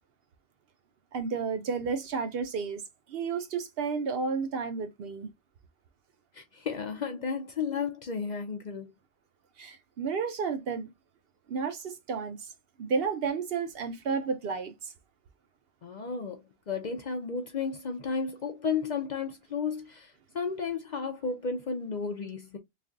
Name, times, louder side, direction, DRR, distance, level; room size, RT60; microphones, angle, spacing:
voice 1, 1.1-2.8 3.1-5.3 9.6-10.9 11.5-12.5 12.8-14.9, right 5 dB, 65° right, 0.7 m, -32 dB
voice 2, 6.3-8.9 15.8-22.6, left 5 dB, 50° left, 0.6 m, -33 dB
3.2 x 2.3 x 3.7 m
omnidirectional pair, 1.2 m